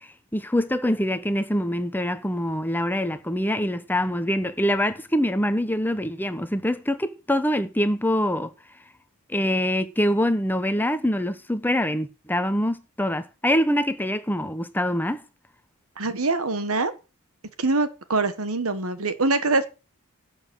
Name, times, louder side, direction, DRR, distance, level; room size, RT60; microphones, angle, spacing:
voice 1, 0.0-8.5 9.3-15.2, equal, 10° left, 1.1 m, -24 dB
voice 2, 16.0-16.9 17.6-19.7, right 3 dB, 70° right, 1.4 m, -24 dB
11.5 x 7.3 x 6.3 m
head